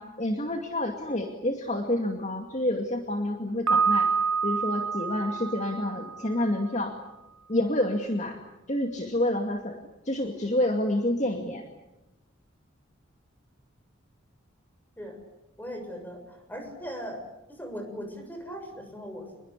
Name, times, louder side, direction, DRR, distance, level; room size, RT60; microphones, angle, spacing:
voice 1, 0.0-4.1 4.4-7.0 7.5-8.4 8.7-9.8 10.0-11.6, left 1 dB, 35° left, 3 dB, 2.3 m, -28 dB
Piano, 3.7-6.6, right 5 dB, 75° right, 1.6 m, -27 dB
voice 2, 15.6-17.2 17.5-19.4, equal, 10° left, 4 dB, 6.8 m, -39 dB
28.5 x 22.0 x 8.4 m, 0.96 s
head